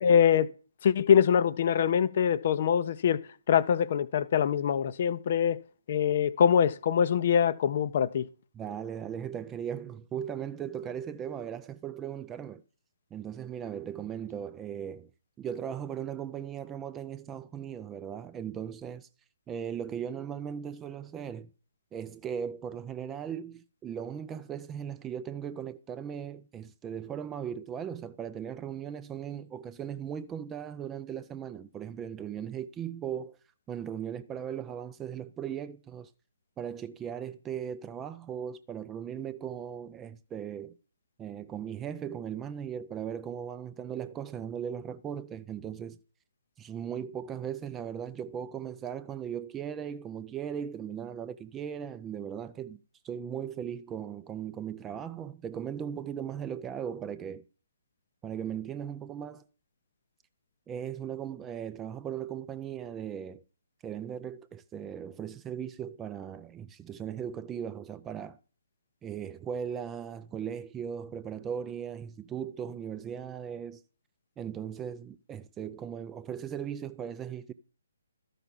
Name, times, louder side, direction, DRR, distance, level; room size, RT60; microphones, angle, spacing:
voice 1, 0.0-0.5 0.8-3.2 3.5-5.6 5.9-8.3, left 8 dB, 45° left, 0.6 m, -24 dB
voice 2, 8.5-12.6 13.1-15.1 15.4-19.1 19.5-21.5 21.9-33.4 33.7-36.1 36.6-40.8 41.2-46.0 46.6-52.8 53.0-57.4 58.2-59.4 60.7-63.4 63.8-68.4 69.0-73.8 74.4-77.5, right 8 dB, 15° right, 0.4 m, -38 dB
13.0 x 5.8 x 5.3 m
figure-of-eight pair, 135°, 0 cm